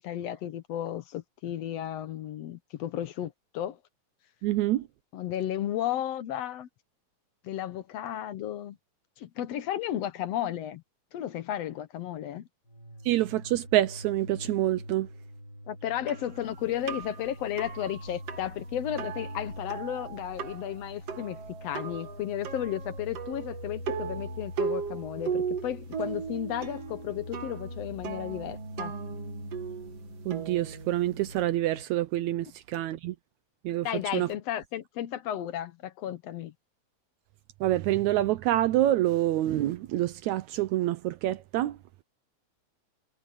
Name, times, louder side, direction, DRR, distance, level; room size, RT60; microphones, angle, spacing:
voice 1, 0.0-3.8 5.1-6.7 7.4-8.8 9.2-10.8 11.1-12.5 15.7-28.9 33.8-36.5, left 11 dB, 65° left, 1.8 m, -34 dB
voice 2, 4.4-4.9 13.0-15.1 30.3-33.2 33.6-33.9 34.1-34.3 37.6-41.8, right 14 dB, 80° right, 2.0 m, -27 dB
sound 1, 12.7-31.8, left 1 dB, 35° left, 3.2 m, -44 dB
sound 2, 16.1-31.4, right 7 dB, 55° right, 2.5 m, -38 dB
omnidirectional pair, 3.5 m